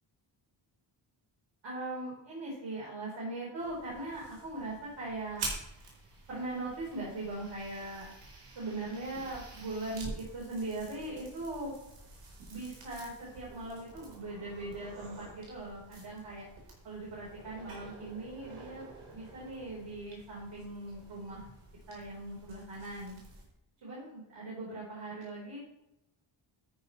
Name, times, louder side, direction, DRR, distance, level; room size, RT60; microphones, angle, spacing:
voice 1, 1.6-5.4 6.3-8.1 8.5-11.7 12.5-16.5 16.8-21.4 21.9-23.2 23.8-25.6, right 2 dB, 65° right, -5 dB, 4.4 m, -40 dB
sound 1, 3.6-23.5, right 3 dB, 90° right, 4.8 m, -48 dB
13.0 x 11.0 x 3.3 m, 0.87 s
cardioid pair, 105°, 48 cm